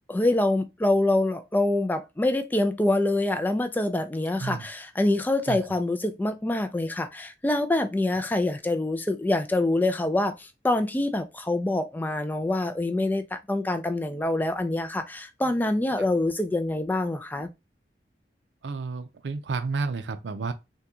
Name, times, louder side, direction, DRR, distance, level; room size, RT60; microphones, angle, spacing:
voice 1, 0.1-17.5, left 2 dB, 10° left, 0.3 m, -25 dB
voice 2, 18.6-20.5, right 4 dB, 90° right, 0.5 m, -31 dB
3.6 x 2.3 x 2.7 m
head